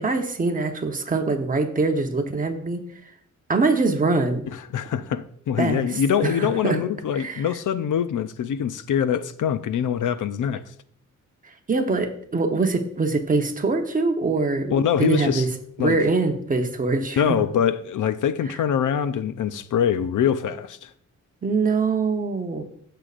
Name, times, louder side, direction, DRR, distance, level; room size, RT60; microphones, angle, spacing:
voice 1, 0.0-2.8 3.5-4.4 5.6-6.8 7.1-7.4 11.7-15.5 15.8-17.4 21.4-22.6, right 3 dB, 25° right, 0.9 m, -23 dB
voice 2, 4.7-10.6 14.7-15.5 15.8-16.0 17.2-20.9, left 8 dB, 90° left, 0.6 m, -24 dB
16.0 x 6.8 x 2.5 m
wide cardioid pair, 175°, 30 cm